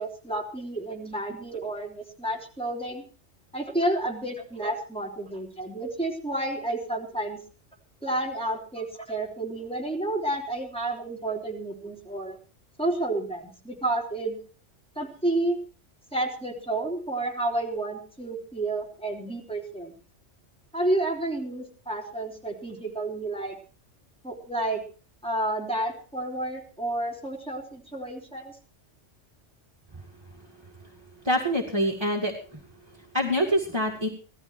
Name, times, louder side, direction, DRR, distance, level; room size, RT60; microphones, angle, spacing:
voice 1, 0.0-3.0 3.5-7.4 8.0-12.4 12.8-14.4 15.0-15.6 16.1-19.9 20.7-23.6 24.2-24.8 25.2-28.5, right 2 dB, 5° left, 0 dB, 3.7 m, -30 dB
voice 2, 31.2-32.6 32.9-34.1, equal, 20° right, -1 dB, 2.3 m, -26 dB
17.0 x 13.5 x 4.5 m, 0.38 s
omnidirectional pair, 1.2 m